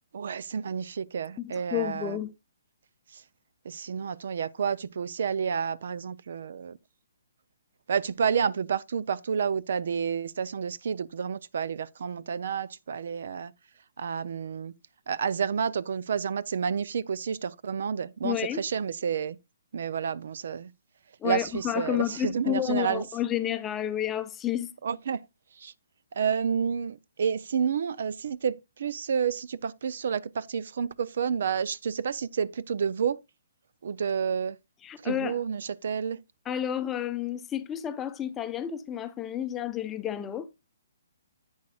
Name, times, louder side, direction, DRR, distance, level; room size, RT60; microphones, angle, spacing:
voice 1, 0.1-2.2 3.1-3.2 3.7-6.8 7.9-13.5 14.0-14.7 15.1-19.4 19.7-20.7 21.2-23.0 24.8-25.2 25.6-25.7 26.2-33.2 33.8-34.6 35.0-36.2, right 7 dB, 60° right, 0.5 m, -30 dB
voice 2, 1.4-2.3 18.2-18.6 21.2-24.7 34.8-35.4 36.5-40.5, left 11 dB, 15° left, 0.6 m, -30 dB
10.5 x 8.6 x 2.3 m
hypercardioid pair, 160°, 0 cm